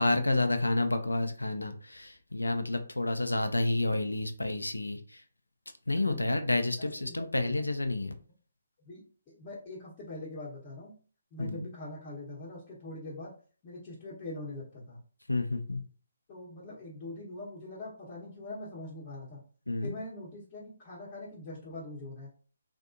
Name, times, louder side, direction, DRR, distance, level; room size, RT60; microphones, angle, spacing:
voice 1, 0.0-5.2 5.9-8.1 11.4-11.7 15.3-15.8 19.7-20.0, left 2 dB, 85° left, 8 dB, 0.5 m, -30 dB
voice 2, 6.8-7.7 8.8-10.9 11.3-13.3 13.6-15.0 16.3-19.4 19.8-22.3, left 2 dB, 25° left, -8 dB, 1.0 m, -43 dB
3.4 x 2.3 x 2.5 m, 0.39 s
figure-of-eight pair, 140°, 0 cm